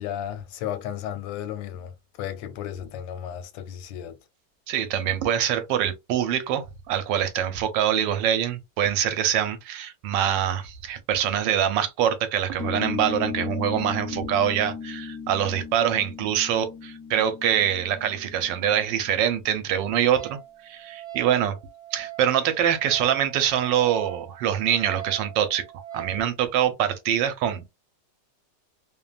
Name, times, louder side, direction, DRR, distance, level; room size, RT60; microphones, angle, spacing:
voice 1, 0.0-4.2, left 10 dB, 85° left, 1.3 m, -34 dB
voice 2, 4.7-20.4 20.6-21.6 21.9-27.7, right 10 dB, 80° right, 1.3 m, -24 dB
sound 1, 12.6-19.5, left 6 dB, 20° left, 0.7 m, -36 dB
Wind instrument woodwind instrument, 20.1-26.2, right 14 dB, 25° right, 1.3 m, -41 dB
3.0 x 2.2 x 2.3 m
omnidirectional pair, 2.0 m